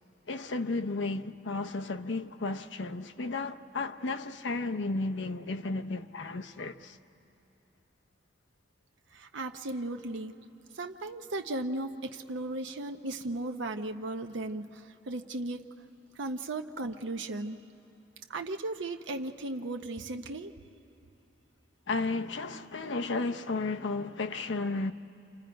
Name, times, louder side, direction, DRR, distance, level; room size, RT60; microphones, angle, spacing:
voice 1, 0.3-7.0 21.9-24.9, left 3 dB, 70° left, 0.7 m, -33 dB
voice 2, 9.1-10.3 10.7-15.6 16.2-17.6 18.3-20.5, right 2 dB, 75° right, 0.7 m, -36 dB
28.5 x 28.0 x 5.1 m
head